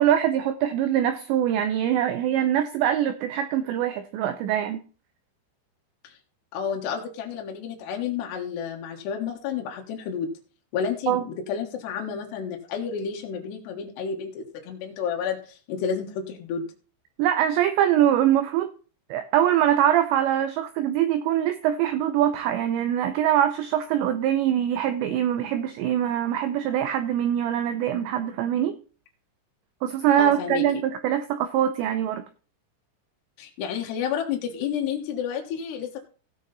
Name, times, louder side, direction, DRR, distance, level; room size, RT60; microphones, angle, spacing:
voice 1, 0.0-4.8 11.1-11.2 17.2-18.7 19.1-28.8 29.8-32.3, right 11 dB, 80° right, 9 dB, 2.6 m, -23 dB
voice 2, 6.5-10.3 10.7-16.7 30.2-30.6 33.4-36.0, left 7 dB, 65° left, 1 dB, 3.2 m, -30 dB
16.5 x 6.1 x 4.1 m, 0.38 s
omnidirectional pair, 5.7 m